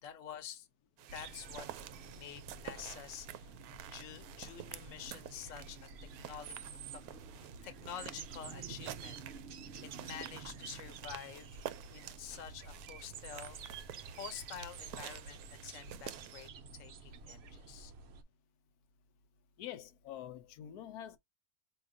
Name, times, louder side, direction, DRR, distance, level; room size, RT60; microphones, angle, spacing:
voice 1, 0.0-0.7 1.1-3.5 3.9-5.9 6.2-9.4 10.0-13.6 14.1-17.9, left 9 dB, 60° left, 1.2 m, -49 dB
sound 1, 1.0-16.5, right 12 dB, 75° right, 1.0 m, -50 dB
sound 2, 1.1-18.2, right 5 dB, 60° right, 0.7 m, -50 dB
voice 2, 19.6-21.2, left 11 dB, 80° left, 1.1 m, -46 dB
4.7 x 2.8 x 2.4 m
omnidirectional pair, 1.6 m